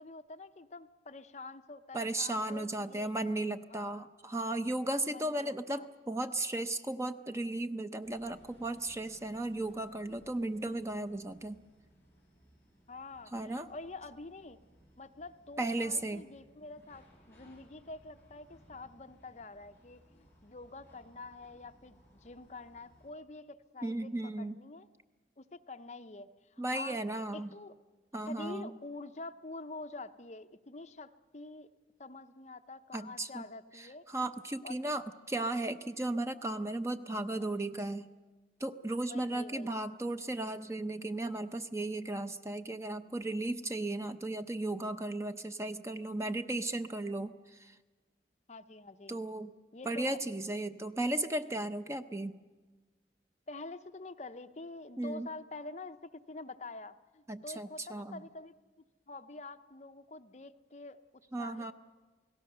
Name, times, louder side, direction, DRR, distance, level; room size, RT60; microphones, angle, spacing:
voice 1, 0.0-3.1 3.7-4.1 5.1-5.9 12.9-14.6 15.0-24.1 24.4-24.9 25.4-27.0 27.3-27.7 28.3-31.7 32.0-34.0 34.6-34.9 37.3-37.5 39.1-39.7 48.5-49.2 49.7-50.2 53.5-58.5 59.1-61.0 61.4-61.7, left 3 dB, 40° left, 9 dB, 0.7 m, -47 dB
voice 2, 1.9-11.6 13.3-13.7 15.6-16.2 23.8-24.5 26.6-27.5 28.1-28.7 32.9-33.4 33.7-38.1 38.6-47.3 47.6-47.7 49.1-49.5 49.8-52.4 55.0-55.3 57.3-58.2 61.3-61.7, right 2 dB, 15° right, 9 dB, 0.6 m, -35 dB
sound 1, 8.0-23.1, equal, 15° left, 6.9 m, -63 dB
28.5 x 18.0 x 6.7 m, 1.3 s
head